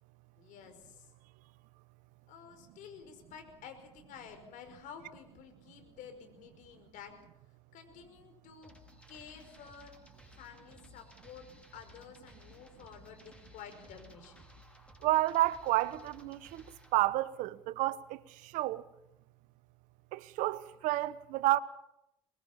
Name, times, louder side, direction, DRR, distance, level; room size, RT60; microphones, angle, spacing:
voice 1, 0.4-1.0 2.3-7.1 7.7-8.7 9.1-9.9 10.4-11.5 11.7-14.4, left 7 dB, 70° left, 5.2 m, -51 dB
sound 1, 8.6-17.0, left 1 dB, 10° left, 5.2 m, -58 dB
voice 2, 15.0-16.6 16.9-18.2 18.5-18.8 20.1-21.6, right 16 dB, 70° right, 1.1 m, -30 dB
24.0 x 21.0 x 7.2 m
hypercardioid pair, 60°, 14 cm